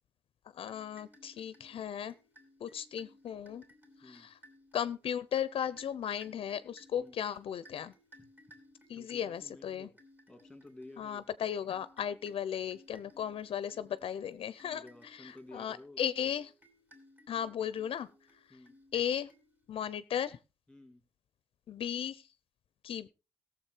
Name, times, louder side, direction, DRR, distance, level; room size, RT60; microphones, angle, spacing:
voice 1, 0.5-2.1 2.6-3.6 4.0-4.4 4.7-7.9 8.9-9.9 11.0-16.5 17.3-18.1 18.5-18.6 18.9-19.3 19.7-20.4 21.7-22.3 22.8-23.1, left 9 dB, 65° left, 16 dB, 0.6 m, -36 dB
sound 1, 0.6-19.8, left 1 dB, 20° right, 3.1 m, -62 dB
voice 2, 8.9-9.9 10.3-11.2 14.7-16.0 18.5-18.8 20.7-21.0, left 2 dB, 5° left, 8 dB, 2.1 m, -52 dB
17.5 x 7.2 x 4.5 m, 0.31 s
wide cardioid pair, 170°, 10 cm